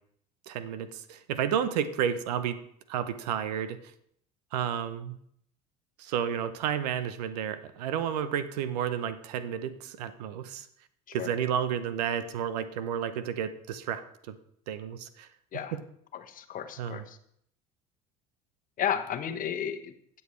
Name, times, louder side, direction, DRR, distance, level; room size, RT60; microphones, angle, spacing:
voice 1, 0.5-2.6 2.9-3.8 4.5-5.2 6.0-10.7 11.1-14.4 14.7-15.3 15.7-15.8 16.8-17.0, right 8 dB, 75° right, 13 dB, 0.8 m, -31 dB
voice 2, 16.1-17.2 18.8-19.9, left 9 dB, 40° left, 7 dB, 1.1 m, -33 dB
16.0 x 7.1 x 3.2 m, 0.69 s
hypercardioid pair, 70°, 21 cm